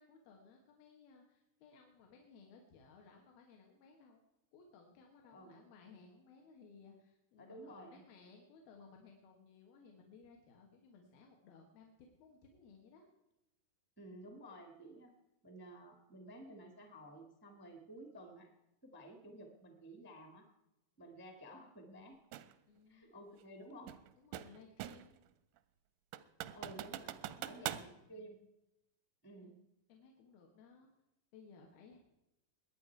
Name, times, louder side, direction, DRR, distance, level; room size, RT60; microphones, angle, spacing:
voice 1, 0.0-4.2 4.5-13.1 22.7-23.2 24.2-25.2 27.2-28.3 29.9-30.9 31.3-32.0, left 5 dB, 80° left, 1 dB, 3.4 m, -60 dB
voice 2, 5.3-5.6 7.4-8.0 14.0-15.1 15.4-18.5 18.8-20.5 21.0-22.2 22.9-23.9 26.5-28.4 29.2-29.6, right 1 dB, 5° left, 4 dB, 0.8 m, -53 dB
sound 1, 22.3-22.5 23.9-25.2 25.6-25.7 26.1-27.9, right 13 dB, 80° right, 1.8 m, -43 dB
21.5 x 9.4 x 4.7 m, 0.90 s
omnidirectional pair, 4.2 m